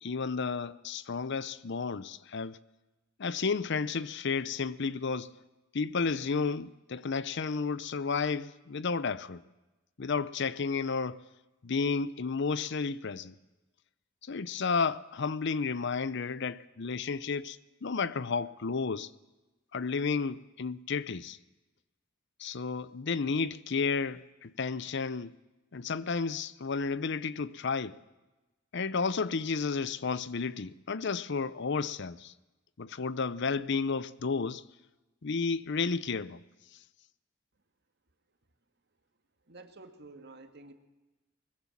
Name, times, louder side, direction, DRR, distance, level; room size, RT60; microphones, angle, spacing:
voice 1, 0.0-2.6 3.2-5.3 5.7-9.4 10.0-11.2 11.6-13.3 14.2-19.1 19.7-21.4 22.4-25.3 25.7-28.0 28.7-32.3 32.8-34.6 35.2-36.4, left 5 dB, 60° left, 0.7 m, -32 dB
voice 2, 39.5-40.7, right 2 dB, 55° right, 2.0 m, -50 dB
22.0 x 20.5 x 7.3 m
head